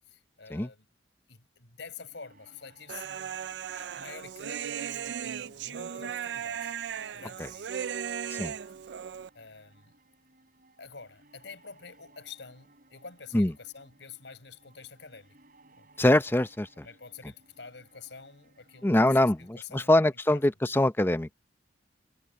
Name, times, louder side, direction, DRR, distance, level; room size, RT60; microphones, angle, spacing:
voice 1, 0.1-0.9 1.3-6.8 7.1-7.8 8.5-8.6 9.3-9.9 10.8-15.4 15.7-15.9 16.8-20.0 20.3-20.4, left 5 dB, 75° left, 4.8 m, -48 dB
sound 1, 1.8-19.5, right 2 dB, 50° right, 7.4 m, -62 dB
Human voice, 2.9-9.3, right 8 dB, 65° right, 0.4 m, -36 dB
voice 2, 16.0-16.8 18.8-19.4 19.7-21.3, left 1 dB, 10° left, 0.6 m, -23 dB
head